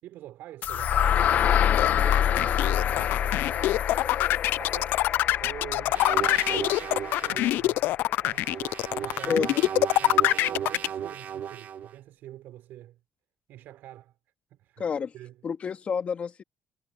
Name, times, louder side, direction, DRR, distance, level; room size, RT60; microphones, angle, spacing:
voice 1, 0.0-3.8 4.6-5.0 5.4-7.9 8.2-8.5 9.0-9.6 10.0-13.0 13.5-14.2 14.5-14.9 15.1-15.4, right 13 dB, 80° right, 5.2 m, -45 dB
sound 1, 0.6-8.6, left 10 dB, 60° left, 1.0 m, -27 dB
sound 2, 1.8-10.9, left 15 dB, 85° left, 0.4 m, -24 dB
sound 3, 5.9-7.5 8.3-11.9, right 9 dB, 60° right, 1.6 m, -35 dB
voice 2, 9.3-9.7 14.8-15.1 15.4-16.4, left 6 dB, 40° left, 2.5 m, -29 dB
cardioid pair, 110°, 3 cm